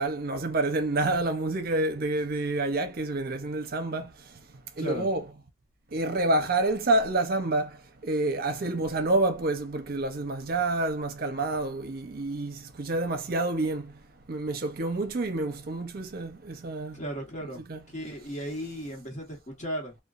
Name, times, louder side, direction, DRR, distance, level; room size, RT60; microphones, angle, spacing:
voice 1, 0.0-4.0 4.8-5.2 5.9-7.7 8.0-13.8 14.3-16.9 17.5-17.8, right 2 dB, 55° right, 0.6 m, -28 dB
voice 2, 4.8-5.1 16.9-20.0, right 1 dB, 40° left, 1.1 m, -36 dB
3.1 x 2.2 x 2.4 m
head